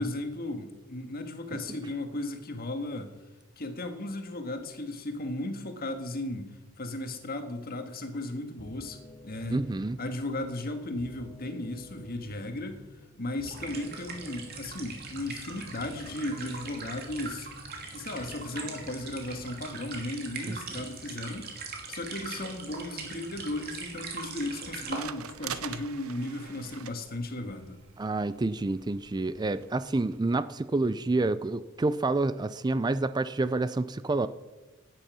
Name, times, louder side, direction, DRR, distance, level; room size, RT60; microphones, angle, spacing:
voice 1, 0.0-3.1 3.6-9.6 10.0-12.8 13.2-17.5 17.9-21.5 21.9-27.8, left 1 dB, 45° left, 7 dB, 1.7 m, -35 dB
sound 1, 8.6-20.6, left 1 dB, 25° left, 1.5 m, -51 dB
voice 2, 9.5-10.0 20.5-20.6 28.0-34.3, right 2 dB, 20° right, 13 dB, 0.4 m, -28 dB
sound 2, 13.4-25.0, right 4 dB, 50° right, 2.8 m, -41 dB
sound 3, 23.4-30.2, right 8 dB, 85° right, 0.8 m, -45 dB
16.0 x 10.0 x 6.1 m, 1.1 s
head